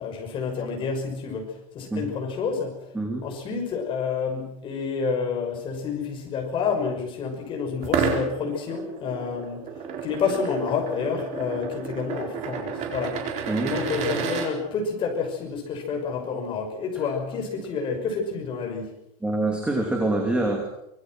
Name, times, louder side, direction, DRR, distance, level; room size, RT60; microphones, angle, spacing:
voice 1, 0.0-2.7 3.2-9.6 10.0-13.2 13.7-18.9, left 5 dB, 30° left, 2 dB, 6.2 m, -29 dB
sound 1, 7.8-14.5, right 6 dB, 40° right, 4.3 m, -31 dB
voice 2, 13.5-13.8 19.2-20.7, right 2 dB, 5° right, 1 dB, 2.9 m, -25 dB
25.0 x 20.5 x 6.3 m, 0.86 s
supercardioid pair, 165°, 18 cm